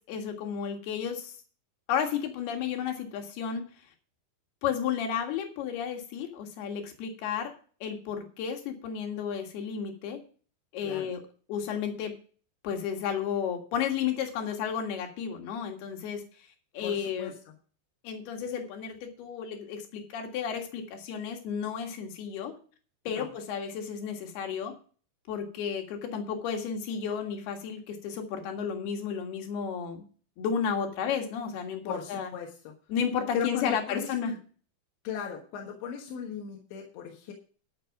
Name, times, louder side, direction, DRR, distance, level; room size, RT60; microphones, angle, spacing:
voice 1, 0.1-1.3 1.9-3.6 4.6-7.5 7.8-10.2 10.7-11.2 11.5-12.1 12.6-16.2 16.7-17.3 18.0-22.5 23.1-24.7 25.3-30.0 30.4-32.3 32.9-34.3, left 7 dB, 65° left, 4 dB, 3.6 m, -32 dB
voice 2, 16.8-17.3 23.1-23.3 31.9-32.8 33.3-34.4 35.1-37.3, left 7 dB, 90° left, 2 dB, 3.8 m, -37 dB
12.0 x 6.6 x 5.9 m, 0.41 s
omnidirectional pair, 5.0 m